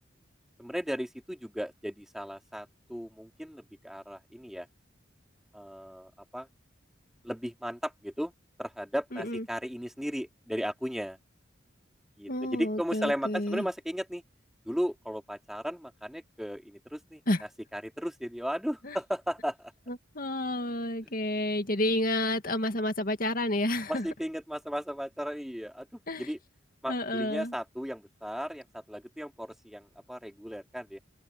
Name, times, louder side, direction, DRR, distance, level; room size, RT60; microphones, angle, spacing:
voice 1, 0.6-4.7 5.5-6.5 7.2-8.3 8.6-11.2 12.2-14.2 14.7-17.2 17.7-19.7 21.0-21.1 23.9-26.4 26.8-31.0, equal, ahead, 3.0 m, -35 dB
voice 2, 9.1-9.4 12.3-13.6 17.3-17.4 18.8-19.0 19.9-24.1 26.1-26.3 26.9-27.5, left 1 dB, 50° left, 2.1 m, -30 dB
head